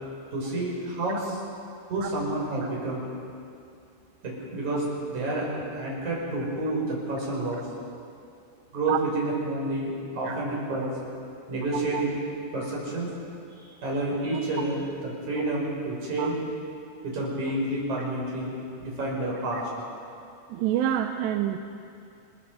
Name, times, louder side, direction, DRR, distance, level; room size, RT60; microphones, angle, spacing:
voice 1, 0.3-1.4 1.9-3.0 4.2-4.8 5.1-5.5 5.7-7.7 8.7-10.9 11.5-12.2 12.5-13.1 13.6-14.9 15.3-16.4 17.0-18.5 18.8-19.7, right 2 dB, 45° right, -4 dB, 7.2 m, -29 dB
voice 2, 20.5-21.6, right 11 dB, 90° right, 5 dB, 2.9 m, -27 dB
29.5 x 21.5 x 5.6 m, 2.5 s
omnidirectional pair, 4.9 m